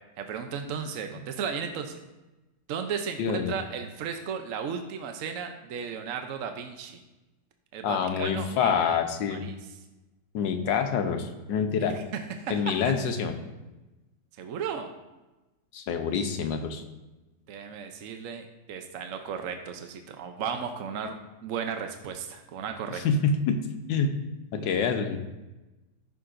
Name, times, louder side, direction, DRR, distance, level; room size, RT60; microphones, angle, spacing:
voice 1, 0.2-1.9 2.7-7.0 7.7-9.0 9.3-9.6 11.8-12.0 12.4-12.8 14.4-14.9 17.5-21.2 21.4-23.0 24.5-24.7, right 6 dB, 65° right, 6 dB, 0.8 m, -35 dB
voice 2, 3.2-3.5 7.8-9.4 10.3-11.9 12.5-13.3 15.7-16.8 22.9-23.6 23.9-24.1 24.5-25.2, left 6 dB, 80° left, 6 dB, 1.5 m, -26 dB
14.0 x 6.7 x 2.6 m, 1.1 s
omnidirectional pair, 2.0 m